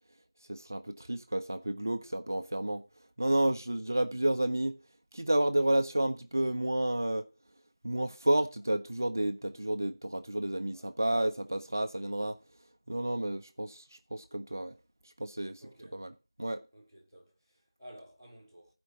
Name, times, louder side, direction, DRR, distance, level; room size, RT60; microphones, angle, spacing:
voice 1, 0.5-2.8 3.2-4.8 5.1-7.3 7.8-12.4 12.9-13.8 14.1-14.7 15.2-15.6 15.9-16.1 16.4-16.6, right 1 dB, 40° right, 0.7 m, -30 dB
voice 2, 10.7-11.9 15.6-16.1 16.7-18.7, equal, 5° left, 1.9 m, -55 dB
15.0 x 5.2 x 6.2 m
figure-of-eight pair, 175°, 3 cm